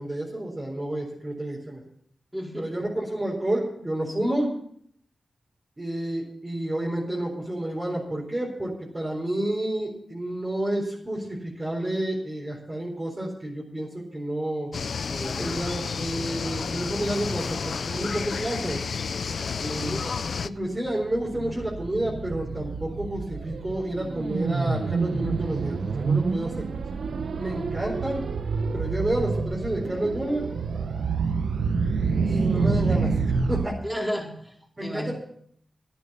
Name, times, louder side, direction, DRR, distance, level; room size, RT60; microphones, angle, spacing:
voice 1, 0.0-1.8 2.6-4.5 5.8-14.7 15.4-18.8 19.6-20.1 20.4-26.7 27.4-28.2 28.7-30.5 32.2-33.1 33.5-33.8 34.8-35.1, right 1 dB, 25° right, -4 dB, 4.2 m, -30 dB
voice 2, 2.3-2.9 15.1-15.6 19.6-20.1 33.8-34.5 34.8-35.1, equal, 5° right, -1 dB, 4.5 m, -33 dB
sound 1, 14.7-20.5, left 5 dB, 75° left, 0.4 m, -31 dB
sound 2, 20.5-33.7, right 4 dB, 85° right, 0.9 m, -28 dB
11.5 x 10.5 x 6.9 m, 0.66 s
cardioid pair, 55°, 0 cm